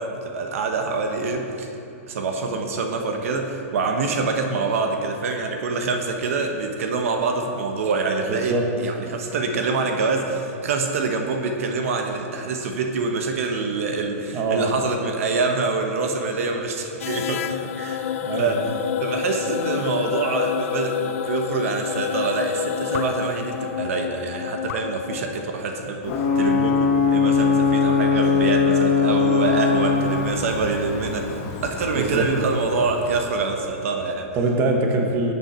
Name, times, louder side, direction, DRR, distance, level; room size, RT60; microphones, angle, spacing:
voice 1, 0.0-1.7 2.1-18.7 19.0-34.3, right 4 dB, 70° right, 4 dB, 1.2 m, -25 dB
voice 2, 8.3-8.7 14.3-14.7 18.2-18.7 31.9-32.3 34.3-35.3, right 2 dB, 30° right, 2 dB, 1.3 m, -23 dB
sound 1, 17.0-25.4, left 9 dB, 65° left, 0.5 m, -28 dB
Ocean / Boat Water vehicle / Alarm, 26.0-33.6, left 5 dB, 40° left, 1.2 m, -22 dB
14.5 x 8.9 x 4.5 m, 2.8 s
hypercardioid pair, 145°, 8 cm